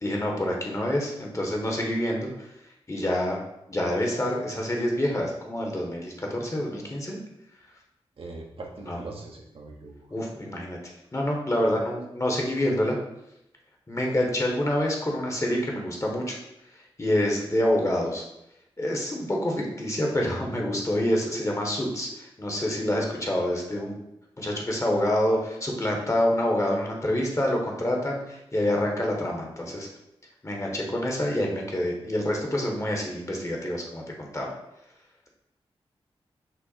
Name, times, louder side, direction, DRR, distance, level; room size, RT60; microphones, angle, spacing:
voice 1, 0.0-2.5 2.9-3.4 3.7-7.2 8.8-9.0 10.1-10.8 11.1-13.0 13.9-16.4 17.0-18.2 18.8-24.0 24.4-29.9 30.4-34.5, left 1 dB, 30° left, -1 dB, 1.2 m, -27 dB
voice 2, 8.2-10.0, right 3 dB, 65° right, 0 dB, 0.9 m, -41 dB
5.7 x 2.1 x 4.1 m, 0.83 s
cardioid pair, 50°, 11 cm